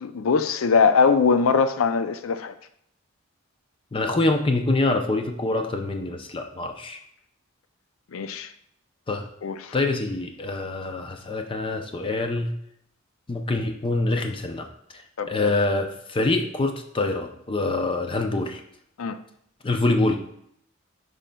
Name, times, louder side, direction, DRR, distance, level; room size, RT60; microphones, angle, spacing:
voice 1, 0.0-2.5 8.1-8.5 9.4-9.7 15.2-15.4 19.0-19.2, left 5 dB, 80° left, 11 dB, 0.5 m, -21 dB
voice 2, 3.9-7.0 9.1-9.3 9.7-12.5 13.3-14.7 14.9-18.6 19.6-20.2, left 2 dB, 25° left, 5 dB, 0.5 m, -25 dB
9.0 x 5.0 x 2.2 m, 0.71 s
head